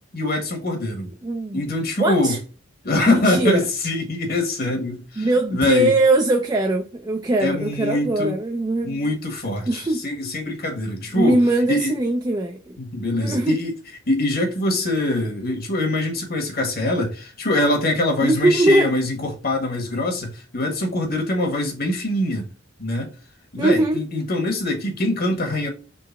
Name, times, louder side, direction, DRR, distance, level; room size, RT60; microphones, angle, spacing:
voice 1, 0.1-1.1 1.5-2.4 2.8-5.9 7.4-8.3 8.8-11.4 11.7-12.0 12.8-13.7 14.1-22.5 22.8-23.1 23.5-25.7, left 1 dB, 50° left, 1.3 m, -23 dB
voice 2, 1.2-1.6 2.0-2.4 3.1-3.7 5.2-9.0 9.7-10.0 11.1-12.8 13.2-13.6 18.2-18.9 23.6-24.0, right 2 dB, 20° right, 0.4 m, -21 dB
3.9 x 3.2 x 4.0 m
head